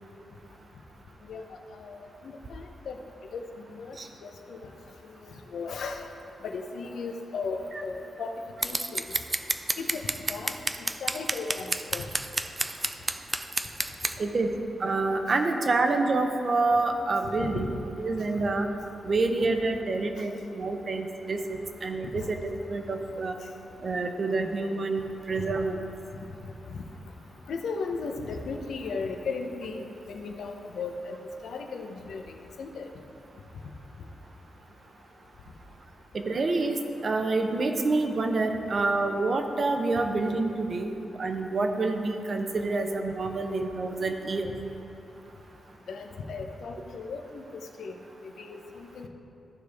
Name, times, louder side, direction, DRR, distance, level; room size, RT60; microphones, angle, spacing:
voice 1, 2.2-3.0 3.3-3.5 3.7-4.0 4.2-4.6 5.5-6.0 6.4-8.3 8.6-9.0 9.8-10.0 10.3-10.5 11.0-12.1 17.4-17.7 22.2-22.3 27.5-31.2 31.4-32.2 32.6-32.9 45.9-47.4 47.8-47.9 48.4-49.1, left 4 dB, 80° left, 4 dB, 0.7 m, -36 dB
Scissors, 8.6-14.1, right 2 dB, 20° right, 0.3 m, -29 dB
voice 2, 14.8-17.7 18.0-18.7 19.0-23.4 23.8-25.8 36.1-40.9 41.2-44.5, right 3 dB, 45° right, 5 dB, 0.7 m, -27 dB
14.5 x 4.9 x 3.5 m, 2.8 s
wide cardioid pair, 120°, 0 cm